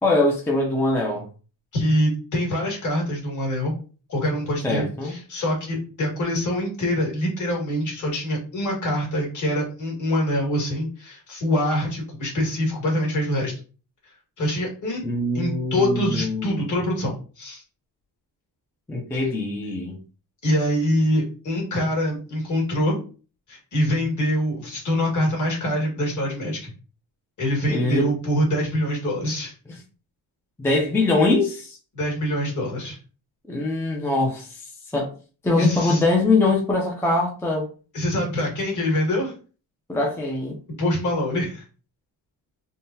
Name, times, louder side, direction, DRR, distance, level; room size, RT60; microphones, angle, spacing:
voice 1, 0.0-1.3 4.6-5.1 15.0-16.6 18.9-20.0 27.7-28.1 30.6-31.8 33.5-35.1 35.4-37.7 39.9-40.6, left 2 dB, 5° left, 0.4 m, -23 dB
voice 2, 1.7-3.7 4.1-13.5 14.4-15.1 15.3-17.6 20.4-23.0 23.5-26.7 27.4-29.5 31.9-33.0 35.6-36.0 37.9-39.3 40.8-41.6, equal, 45° left, 1.7 m, -24 dB
3.6 x 2.2 x 2.6 m
cardioid pair, 150°, 41 cm